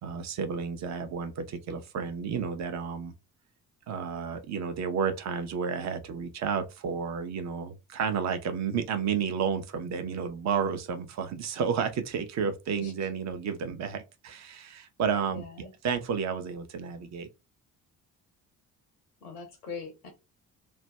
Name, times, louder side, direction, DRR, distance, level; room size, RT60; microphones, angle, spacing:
voice 1, 0.0-3.1 3.9-17.3, right 6 dB, 40° right, 0.6 m, -31 dB
voice 2, 15.3-15.7 19.2-20.1, left 4 dB, 90° left, 0.7 m, -41 dB
2.5 x 2.2 x 3.1 m
figure-of-eight pair, 45°, 44 cm